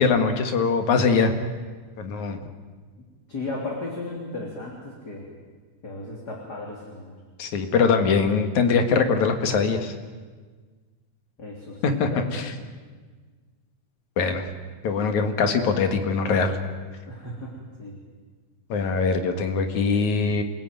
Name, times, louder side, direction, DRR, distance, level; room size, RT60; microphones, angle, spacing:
voice 1, 0.0-1.3 2.0-2.4 7.4-9.9 11.8-12.5 14.2-14.5 14.8-16.6 18.7-20.4, left 5 dB, 65° left, 7 dB, 3.1 m, -22 dB
voice 2, 3.3-5.3 5.8-7.1 11.4-12.4 17.1-17.5 17.8-18.0, left 2 dB, 30° left, -1 dB, 3.7 m, -35 dB
27.5 x 18.0 x 9.2 m, 1.5 s
omnidirectional pair, 3.6 m